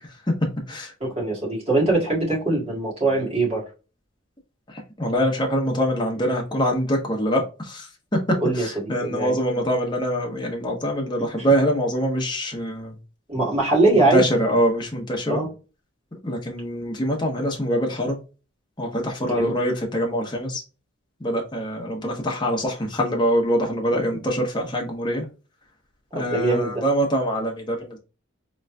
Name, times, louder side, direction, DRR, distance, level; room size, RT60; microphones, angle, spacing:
voice 1, 0.3-0.9 5.0-12.9 14.0-15.4 16.2-18.2 18.8-20.6 21.2-25.2 26.1-28.0, equal, 20° left, 1.0 m, -24 dB
voice 2, 1.0-3.6 8.4-9.3 11.2-11.5 13.3-14.2 15.3-15.5 19.2-19.5 26.1-26.8, right 2 dB, 30° right, 2.1 m, -22 dB
4.0 x 3.1 x 2.3 m
head